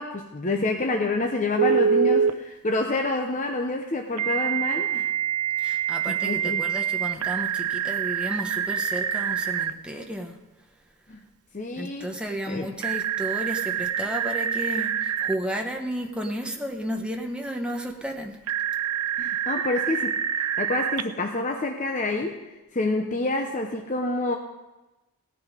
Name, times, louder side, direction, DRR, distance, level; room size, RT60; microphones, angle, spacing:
voice 1, 0.0-5.1 5.5-5.8 6.1-6.7 11.1-11.2 11.5-12.1 12.5-12.7 19.2-22.4 22.7-24.4, left 2 dB, 35° left, 3 dB, 0.8 m, -28 dB
Telephone, 1.6-2.3 4.2-9.7 12.8-15.3 18.5-21.0, right 8 dB, 85° right, 0.6 m, -26 dB
voice 2, 5.6-10.4 11.8-18.4, equal, 5° right, 1 dB, 1.1 m, -32 dB
17.5 x 9.6 x 5.0 m, 1.1 s
head